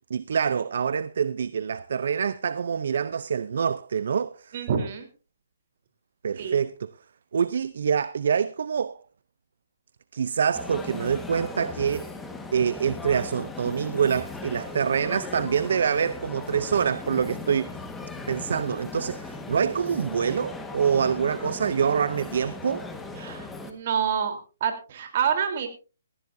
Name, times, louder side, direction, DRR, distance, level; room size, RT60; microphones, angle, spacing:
voice 1, 0.1-4.5 6.2-6.7 7.3-9.0 10.1-12.1 12.5-17.7 18.3-22.9, right 7 dB, 65° right, 0.6 m, -26 dB
voice 2, 4.5-5.1 6.4-6.6 23.2-25.7, right 7 dB, 45° right, 3.6 m, -27 dB
sound 1, 10.5-23.7, left 3 dB, 5° left, 1.5 m, -38 dB
18.0 x 15.5 x 2.7 m
hypercardioid pair, 160°, 0 cm